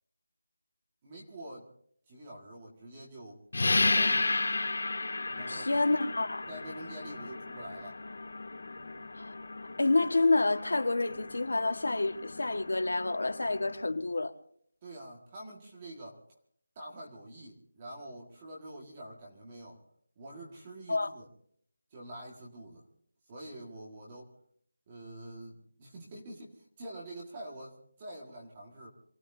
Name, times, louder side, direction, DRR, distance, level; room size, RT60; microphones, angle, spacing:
voice 1, 1.0-1.7 2.1-4.4 5.3-5.8 6.5-8.0 14.8-16.2 16.8-19.8 20.2-21.3 21.9-22.9 23.3-24.3 24.9-28.9, right 1 dB, 15° right, 1.9 m, -46 dB
sound 1, 3.5-13.8, left 3 dB, 65° left, 2.8 m, -34 dB
voice 2, 5.4-6.5 9.2-9.3 9.8-14.3 20.9-21.1, left 2 dB, 85° left, 1.6 m, -28 dB
27.5 x 19.0 x 2.8 m
figure-of-eight pair, 180°, 0 cm